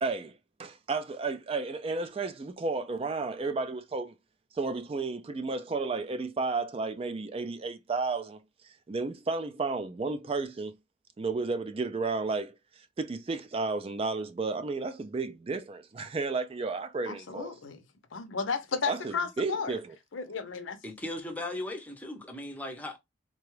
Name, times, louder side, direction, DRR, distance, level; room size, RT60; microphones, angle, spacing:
voice 1, 0.0-4.1 4.5-10.8 11.2-17.5 18.9-19.9, right 3 dB, 30° right, 0.3 m, -33 dB
voice 2, 17.1-17.8 18.1-19.8 20.1-20.8, left 5 dB, 80° left, 0.7 m, -33 dB
voice 3, 20.8-23.0, left 1 dB, 10° left, 0.6 m, -37 dB
3.8 x 2.2 x 3.1 m
head